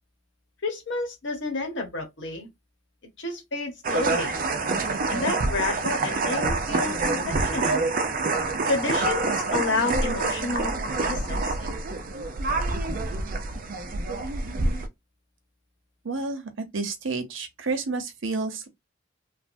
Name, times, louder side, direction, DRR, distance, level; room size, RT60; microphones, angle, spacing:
voice 1, 0.6-2.5 3.2-4.4 5.1-7.9 8.7-11.7, left 3 dB, 65° left, 1.1 m, -30 dB
sound 1, 3.8-14.9, right 3 dB, 45° right, 0.5 m, -26 dB
voice 2, 16.0-18.7, right 3 dB, 75° right, 0.8 m, -30 dB
3.3 x 2.0 x 2.5 m
head